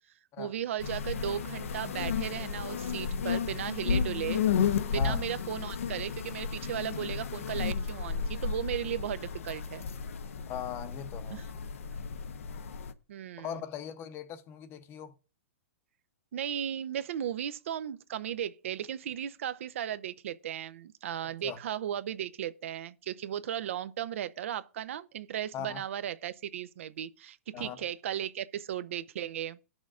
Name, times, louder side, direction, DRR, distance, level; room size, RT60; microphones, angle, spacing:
voice 1, 0.4-4.4 4.9-9.9 11.3-11.4 13.1-13.6 16.3-29.6, right 10 dB, 70° right, 0.5 m, -36 dB
sound 1, 0.8-12.9, left 6 dB, 80° left, 0.7 m, -33 dB
voice 2, 4.9-5.3 10.5-11.4 13.4-15.1 21.4-21.6 25.5-25.8 27.5-27.8, left 9 dB, 30° left, 0.7 m, -39 dB
18.5 x 6.2 x 2.4 m
hypercardioid pair, 125°, 7 cm